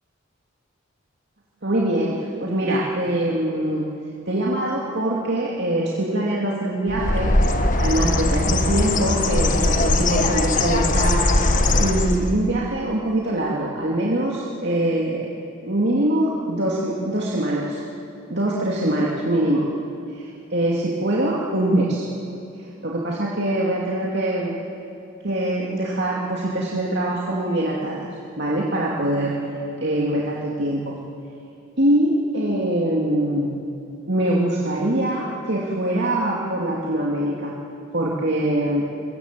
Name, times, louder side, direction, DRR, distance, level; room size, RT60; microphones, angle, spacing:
voice 1, 1.6-3.8 4.3-15.3 15.6-17.8 18.3-19.7 20.1-22.0 22.5-24.6 25.2-28.1 28.4-29.4 29.8-31.0 31.8-33.5 34.1-37.5 37.9-38.9, right 1 dB, 55° right, -4 dB, 2.7 m, -23 dB
Bird, 6.9-12.4, left 2 dB, 40° left, 1.4 m, -20 dB
28.5 x 23.5 x 7.7 m, 2.7 s
head